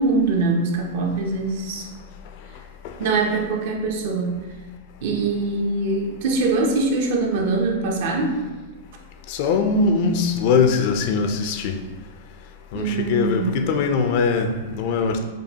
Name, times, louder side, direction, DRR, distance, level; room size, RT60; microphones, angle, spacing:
voice 1, 0.0-1.9 3.0-4.4 5.0-8.4 12.7-13.6, right 3 dB, 65° right, 2 dB, 0.7 m, -23 dB
voice 2, 9.3-11.7 12.7-15.2, left 4 dB, 55° left, 5 dB, 0.4 m, -21 dB
5.1 x 2.2 x 2.8 m, 1.3 s
hypercardioid pair, 130°, 0 cm